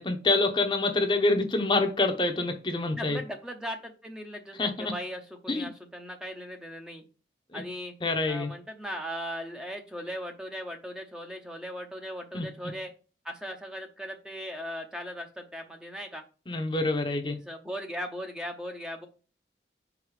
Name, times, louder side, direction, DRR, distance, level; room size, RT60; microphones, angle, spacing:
voice 1, 0.0-3.2 4.6-4.9 5.5-5.7 7.5-7.6 8.0-8.5 12.3-12.4 16.5-17.4, left 2 dB, 25° left, 0.8 m, -26 dB
voice 2, 2.9-7.0 7.5-7.9 8.3-12.9 13.2-16.2 17.4-19.1, equal, 5° right, 0.7 m, -38 dB
4.9 x 4.7 x 4.8 m
head